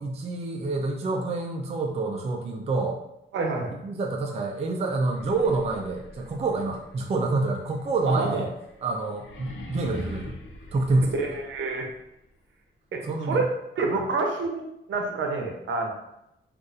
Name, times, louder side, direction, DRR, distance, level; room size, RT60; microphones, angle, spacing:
voice 1, 0.0-3.0 3.8-8.5 8.8-10.3 10.7-11.2 13.0-13.4 13.9-14.0, right 3 dB, 30° right, 2 dB, 0.4 m, -27 dB
voice 2, 3.3-3.7 8.1-8.4 11.1-11.9 12.9-13.5 13.8-15.9, right 3 dB, 70° right, 2 dB, 0.7 m, -28 dB
sound 1, 5.0-11.9, left 1 dB, 80° left, 0.7 m, -43 dB
2.5 x 2.4 x 3.9 m, 0.84 s
cardioid pair, 110°, 20 cm